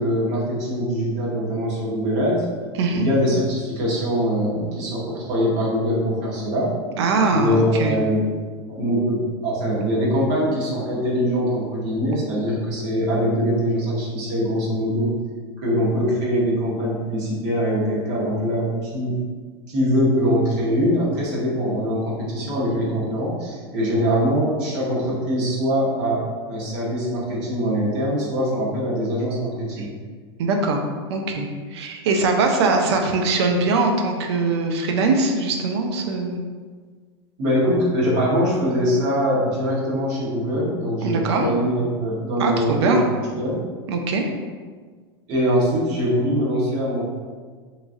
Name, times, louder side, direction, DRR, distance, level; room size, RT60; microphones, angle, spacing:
voice 1, 0.0-2.4 2.9-6.7 7.3-8.3 8.7-15.1 15.6-19.2 19.7-29.9 37.4-43.0 43.3-43.6 45.3-47.0, equal, 50° right, -5 dB, 1.1 m, -22 dB
voice 2, 7.0-7.9 30.4-30.8 31.1-36.4 41.0-41.4 42.4-43.0 43.9-44.2, right 3 dB, 75° right, 3 dB, 0.5 m, -21 dB
3.0 x 2.3 x 2.6 m, 1.5 s
hypercardioid pair, 105°, 14 cm